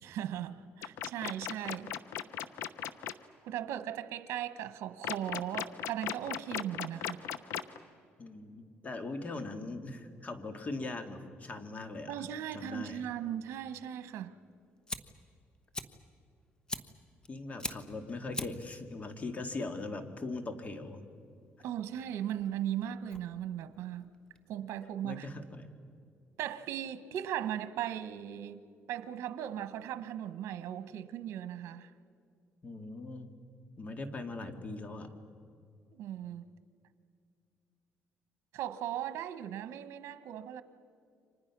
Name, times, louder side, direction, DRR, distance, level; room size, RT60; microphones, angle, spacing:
voice 1, 0.0-1.9 3.4-7.3 12.1-14.3 21.6-24.1 24.5-25.3 26.4-28.6 28.9-31.9 35.9-36.5 38.5-40.6, right 10 dB, 80° right, 1.1 m, -38 dB
sound 1, 0.8-3.1 5.0-7.8, left 11 dB, 80° left, 0.9 m, -36 dB
voice 2, 8.2-12.1 12.5-13.0 17.3-21.0 25.0-25.7 32.6-33.3 33.8-35.1, left 2 dB, 30° left, 2.2 m, -40 dB
Fire, 14.4-24.9, left 2 dB, 15° left, 1.2 m, -45 dB
30.0 x 25.5 x 6.1 m
cardioid pair, 110°, 5 cm